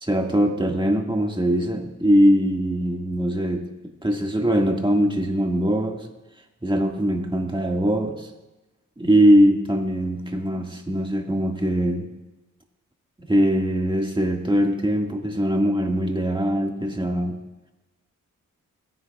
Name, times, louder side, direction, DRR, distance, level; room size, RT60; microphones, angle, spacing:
voice 1, 0.0-3.6 4.0-6.1 6.6-8.3 9.0-12.1 13.2-17.4, equal, 15° right, 2 dB, 1.9 m, -21 dB
17.5 x 9.6 x 2.4 m, 1.1 s
cardioid pair, 45°, 32 cm